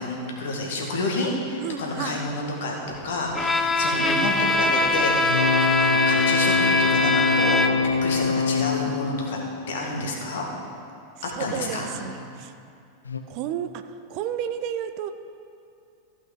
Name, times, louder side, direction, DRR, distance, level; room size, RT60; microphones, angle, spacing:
voice 1, 0.0-2.7 3.0-9.4 9.7-10.4 11.4-12.0, left 2 dB, 60° left, -1 dB, 2.0 m, -29 dB
voice 2, 1.6-2.2 11.3-12.5 13.3-13.8 14.1-15.1, right 10 dB, 45° right, 10 dB, 0.5 m, -31 dB
Bowed string instrument, 3.3-8.0, left 2 dB, 10° left, 0.7 m, -22 dB
sound 1, 5.2-10.3 13.1-13.2, left 5 dB, 75° left, 0.7 m, -25 dB
14.5 x 5.7 x 5.3 m, 2.5 s
figure-of-eight pair, 90°, 0 cm